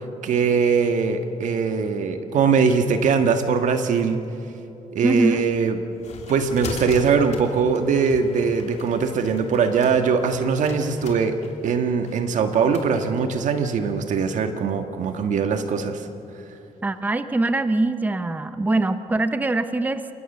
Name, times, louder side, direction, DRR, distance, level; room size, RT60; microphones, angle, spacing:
voice 1, 0.0-4.2 4.9-5.8 6.3-11.3 11.6-16.0, right 5 dB, 70° right, 7 dB, 1.7 m, -21 dB
voice 2, 5.0-5.4 16.8-20.0, right 2 dB, 15° right, 10 dB, 0.7 m, -22 dB
sound 1, 5.5-12.9, left 5 dB, 60° left, 3.0 m, -40 dB
29.5 x 19.0 x 6.8 m, 2.9 s
cardioid pair, 110°, 13 cm